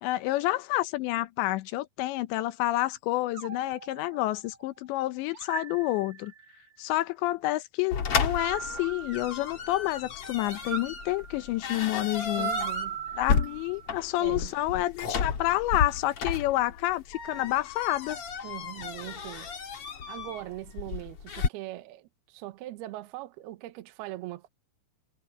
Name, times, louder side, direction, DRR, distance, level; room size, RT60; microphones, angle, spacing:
voice 1, 0.0-6.3 6.8-12.5 13.2-18.2, left 17 dB, 90° left, 3.2 m, -29 dB
sound 1, 3.3-4.7 5.3-6.6 8.1-9.8 10.5-14.0, right 8 dB, 40° right, 3.7 m, -39 dB
sound 2, 7.9-21.5, left 6 dB, 45° left, 2.1 m, -33 dB
voice 2, 12.4-13.0 14.2-14.6 18.4-19.5 19.8-24.5, right 16 dB, 75° right, 2.8 m, -41 dB
omnidirectional pair, 5.0 m